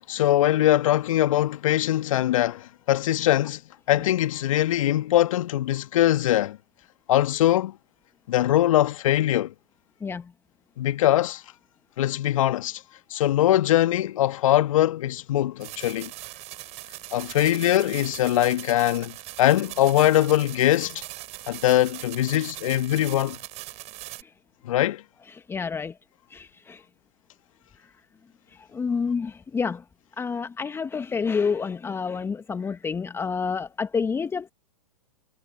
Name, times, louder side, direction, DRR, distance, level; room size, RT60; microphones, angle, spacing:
voice 1, 0.1-3.6 3.9-6.6 7.1-7.7 8.3-9.5 10.8-11.4 12.0-12.8 13.1-16.1 17.1-19.1 19.4-21.0 21.5-23.4 24.6-25.0, left 13 dB, 55° left, 1.8 m, -22 dB
voice 2, 10.0-10.3 24.2-24.3 25.3-26.0 26.3-26.8 28.5-29.8 30.2-34.5, left 5 dB, 10° left, 1.4 m, -29 dB
sound 1, 15.6-24.2, right 18 dB, 35° right, 6.7 m, -40 dB
figure-of-eight pair, 110°, 20 cm